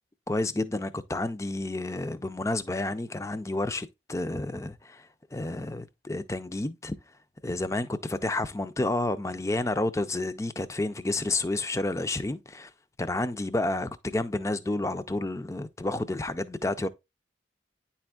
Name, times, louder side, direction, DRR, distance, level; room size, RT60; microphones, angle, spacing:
voice 1, 0.3-7.0 7.4-12.7 13.0-16.9, left 2 dB, 15° left, 0.4 m, -30 dB
9.7 x 4.3 x 2.3 m
head